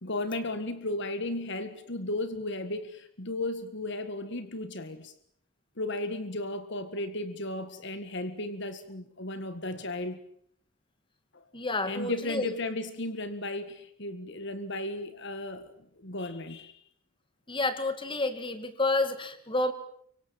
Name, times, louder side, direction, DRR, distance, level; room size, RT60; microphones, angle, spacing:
voice 1, 0.0-5.1 5.8-10.2 11.3-11.4 11.8-16.7, left 2 dB, 55° left, 11 dB, 1.8 m, -35 dB
voice 2, 11.5-12.5 17.5-19.7, left 2 dB, 25° left, 10 dB, 2.4 m, -29 dB
25.0 x 24.5 x 7.5 m, 0.65 s
head